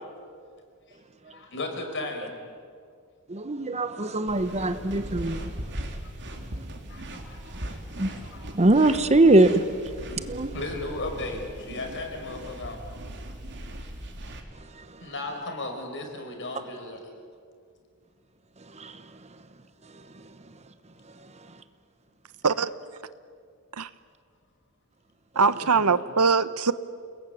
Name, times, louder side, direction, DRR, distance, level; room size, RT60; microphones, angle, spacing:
voice 1, 1.3-2.3 6.2-6.4 6.9-8.7 10.1-12.8 15.0-17.0 25.5-26.0, left 2 dB, 55° left, 4 dB, 5.4 m, -36 dB
voice 2, 3.3-5.5 8.0-8.1 8.5-9.6 10.3-10.5 18.8-18.9, right 2 dB, 30° right, 11 dB, 1.0 m, -21 dB
sound 1, 4.3-14.4, right 1 dB, 55° right, 3.3 m, -39 dB
voice 3, 25.4-26.7, right 5 dB, 85° right, 14 dB, 1.0 m, -22 dB
29.5 x 20.5 x 9.4 m, 2.2 s
head